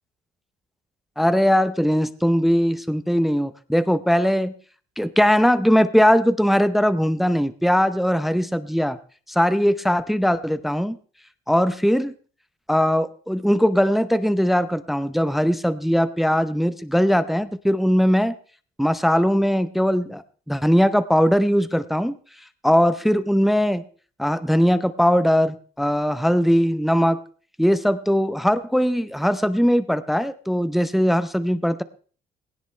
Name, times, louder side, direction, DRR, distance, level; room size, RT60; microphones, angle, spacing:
voice 1, 1.2-4.5 5.0-9.0 9.3-11.0 11.5-12.1 12.7-18.3 18.8-20.2 20.5-22.2 22.6-23.8 24.2-27.2 27.6-31.8, equal, ahead, 13 dB, 0.6 m, -20 dB
18.5 x 17.0 x 3.2 m, 0.42 s
cardioid pair, 110°, 17 cm